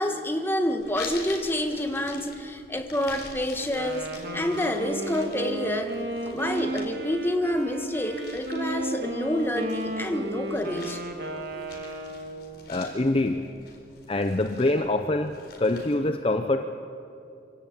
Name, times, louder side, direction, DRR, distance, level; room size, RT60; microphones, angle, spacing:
voice 1, 0.0-4.1 4.3-6.0 6.3-11.0, left 1 dB, 10° left, 5 dB, 1.4 m, -28 dB
sound 1, 0.8-16.0, left 4 dB, 55° left, 4.1 m, -47 dB
Wind instrument woodwind instrument, 3.6-12.6, right 2 dB, 50° right, 2.6 m, -34 dB
voice 2, 12.7-13.5 14.1-16.6, left 2 dB, 30° left, 7 dB, 0.7 m, -25 dB
25.5 x 17.5 x 8.7 m, 2.6 s
head